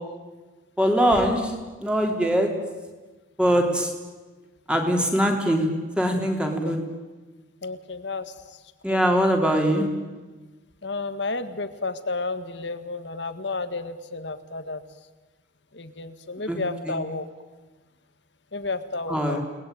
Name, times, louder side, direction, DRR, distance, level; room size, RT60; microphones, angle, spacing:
voice 1, 0.8-1.5 1.8-2.5 3.4-3.9 4.7-5.7 6.0-6.8 8.8-9.9 16.5-16.6 16.9-17.0 19.1-19.4, equal, 5° right, 2 dB, 3.6 m, -22 dB
voice 2, 7.6-8.6 8.9-9.1 10.8-14.8 15.7-17.3 18.5-19.4, left 3 dB, 65° left, 11 dB, 1.8 m, -32 dB
30.0 x 20.0 x 9.3 m, 1.3 s
head